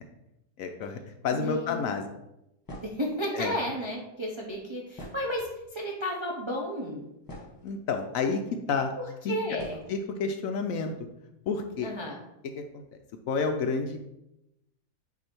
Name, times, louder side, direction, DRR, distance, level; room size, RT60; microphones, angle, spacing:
voice 1, 0.6-2.1 3.3-3.5 7.6-8.4 8.7-8.9 9.2-9.3 9.9-10.9 11.5-11.9 12.4-13.0 13.3-14.0, left 5 dB, 70° left, 6 dB, 0.9 m, -30 dB
voice 2, 1.3-1.8 2.8-7.0 9.0-9.8 11.8-12.2, equal, 35° right, -2 dB, 0.5 m, -33 dB
sound 1, 2.6-3.1 4.9-5.7 6.5-6.6 7.0-7.8 8.7-8.8 9.6-9.9, left 1 dB, 15° left, 1.2 m, -44 dB
8.2 x 2.7 x 4.4 m, 0.87 s
omnidirectional pair, 1.7 m